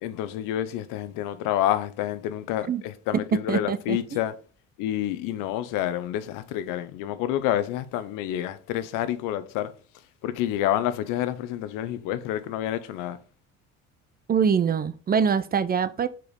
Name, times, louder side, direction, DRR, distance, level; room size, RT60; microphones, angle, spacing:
voice 1, 0.0-4.3 4.8-9.7 10.2-13.2, left 12 dB, 80° left, 0.8 m, -28 dB
voice 2, 3.3-4.0 14.3-16.1, right 6 dB, 30° right, 0.5 m, -24 dB
5.0 x 4.6 x 5.2 m
cardioid pair, 95°, 32 cm